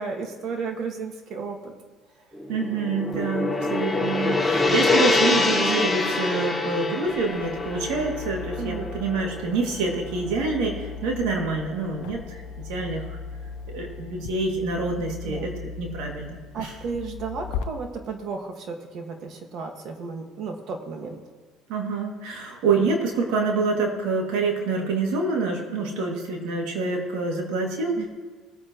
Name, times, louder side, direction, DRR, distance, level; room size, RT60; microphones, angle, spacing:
voice 1, 0.0-1.7 8.6-9.0 15.2-15.5 16.5-21.2 28.0-28.1, right 4 dB, 55° right, 3 dB, 1.9 m, -33 dB
Gong, 2.3-10.7, left 3 dB, ahead, 2.9 m, -25 dB
voice 2, 2.5-12.4 12.7-13.2 13.7-16.8 21.7-28.0, right 3 dB, 80° right, 0 dB, 2.5 m, -26 dB
sound 1, 7.1-17.6, left 6 dB, 70° left, 0.8 m, -38 dB
20.0 x 8.6 x 3.2 m, 1.5 s
supercardioid pair, 100°, 0 cm